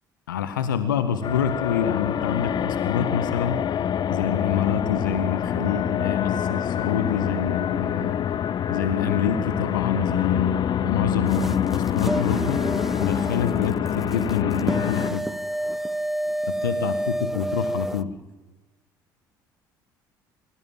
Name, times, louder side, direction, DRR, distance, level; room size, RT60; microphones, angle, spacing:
voice 1, 0.3-3.6 4.1-8.2 8.7-12.6 13.0-15.3 16.5-18.1, left 8 dB, 75° left, 11 dB, 1.7 m, -27 dB
sound 1, 1.2-15.1, left 9 dB, 45° left, 1.2 m, -26 dB
sound 2, 11.3-18.0, right 1 dB, 5° right, 0.8 m, -30 dB
26.5 x 23.0 x 7.8 m, 1.2 s
figure-of-eight pair, 55°, 11 cm